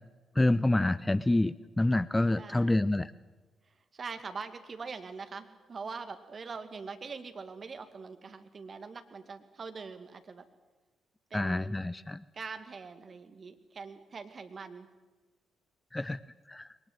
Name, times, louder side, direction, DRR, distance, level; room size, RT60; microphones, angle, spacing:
voice 1, 0.4-3.1 11.3-12.2 15.9-16.2 16.5-16.7, left 2 dB, 15° left, 18 dB, 0.6 m, -27 dB
voice 2, 2.3-2.8 3.7-10.5 11.3-11.8 12.3-14.9, right 4 dB, 45° right, 8 dB, 2.2 m, -43 dB
21.5 x 19.5 x 8.1 m, 1.3 s
figure-of-eight pair, 40°, 0 cm